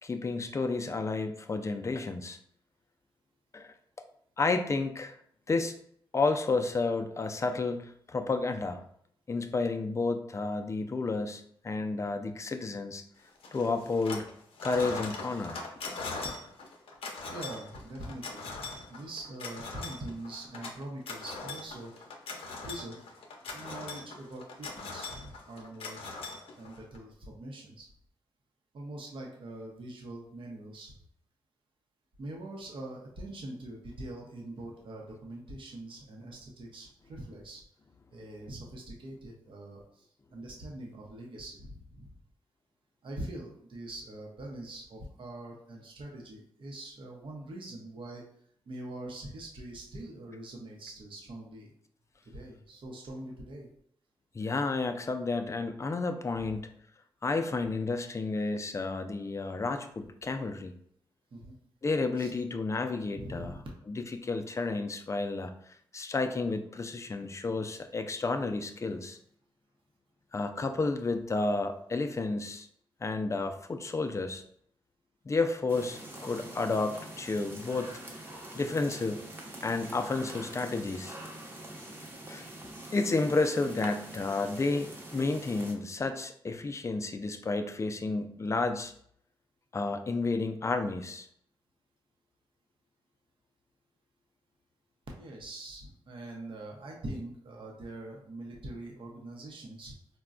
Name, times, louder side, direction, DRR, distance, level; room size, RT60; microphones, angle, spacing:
voice 1, 0.0-2.4 3.5-3.7 4.4-5.1 5.5-5.7 6.1-8.8 9.3-13.0 13.5-14.3 14.6-15.6 16.0-16.1 54.3-56.7 57.2-60.8 61.8-63.6 63.9-65.5 65.9-69.2 70.3-72.7 73.0-74.4 75.3-78.0 78.6-79.3 79.6-81.2 82.3-82.5 82.9-88.9 89.7-91.3, left 3 dB, 30° left, 7 dB, 0.4 m, -31 dB
sound 1, 13.4-14.3 14.6-27.0, left 3 dB, 80° left, 0.6 m, -41 dB
voice 2, 17.3-22.1 22.6-23.0 23.5-26.0 26.6-27.9 28.7-30.9 32.2-37.6 38.1-42.1 43.0-48.2 48.7-51.7 52.2-53.7 56.4-56.5 61.3-61.5 62.2-62.3 63.1-63.7 95.1-99.9, right 1 dB, 65° right, -1 dB, 0.7 m, -43 dB
sound 2, 75.7-85.7, right 1 dB, 25° right, 0.8 m, -45 dB
4.0 x 2.2 x 2.4 m, 0.67 s
cardioid pair, 60°, 9 cm